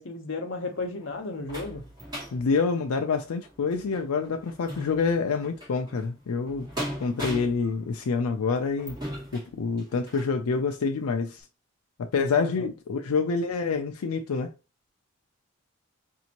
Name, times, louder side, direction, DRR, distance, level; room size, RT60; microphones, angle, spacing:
voice 1, 0.0-1.8 12.4-12.7, left 3 dB, 60° left, 0.8 m, -34 dB
sound 1, 0.5-10.4 10.9-11.0 11.4-11.5, equal, 20° right, 1.7 m, -40 dB
voice 2, 2.3-6.7 7.0-9.0 9.3-11.4 12.0-14.5, left 4 dB, 90° left, 0.4 m, -27 dB
5.1 x 2.7 x 2.9 m
head